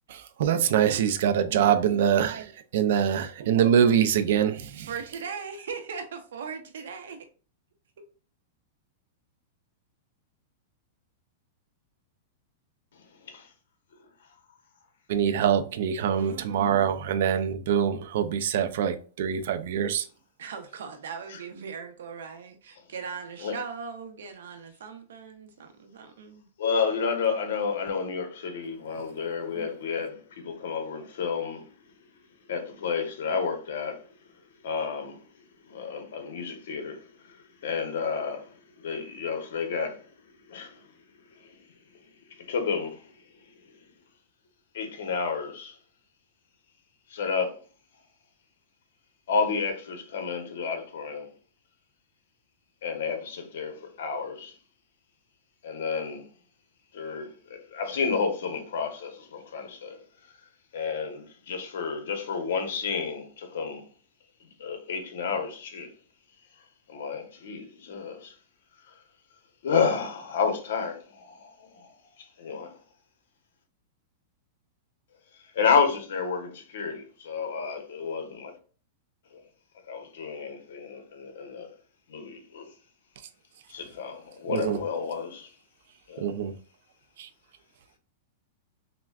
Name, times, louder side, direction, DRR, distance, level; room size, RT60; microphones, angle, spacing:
voice 1, 0.1-4.9 15.1-20.1 29.6-29.7 84.5-84.8 86.2-86.5 87.2-87.3, right 8 dB, 60° right, 0.5 m, -24 dB
voice 2, 4.9-7.3 16.1-16.8 20.4-26.5, right 6 dB, 85° right, 0.8 m, -39 dB
voice 3, 26.6-31.6 32.5-34.1 34.6-35.2 35.6-40.0 40.5-40.8 41.3-41.5 42.3-43.1 44.7-45.8 47.1-47.6 49.3-51.3 52.8-54.6 55.6-56.2 56.9-60.0 60.7-63.9 64.4-65.9 66.9-68.3 69.6-71.9 72.2-72.8 75.5-78.5 79.3-79.4 79.9-81.7 82.1-82.7 83.7-85.5 86.1-86.3, left 5 dB, 75° left, 1.1 m, -31 dB
5.8 x 2.2 x 2.4 m
supercardioid pair, 165°, 0 cm